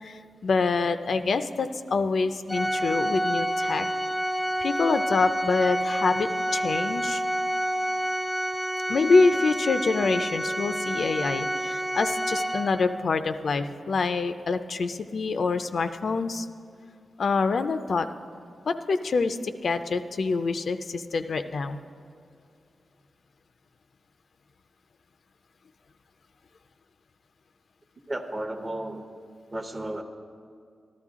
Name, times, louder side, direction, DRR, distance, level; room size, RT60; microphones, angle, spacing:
voice 1, 0.0-3.9 4.6-7.2 8.9-16.5 17.2-18.1 18.7-21.8, left 4 dB, 60° left, 9 dB, 0.4 m, -26 dB
Organ, 2.5-13.1, equal, 5° left, 0.5 m, -28 dB
voice 2, 28.1-29.1 29.5-30.0, right 1 dB, 25° right, 6 dB, 0.8 m, -33 dB
13.5 x 12.5 x 3.6 m, 2.4 s
wide cardioid pair, 125°, 0 cm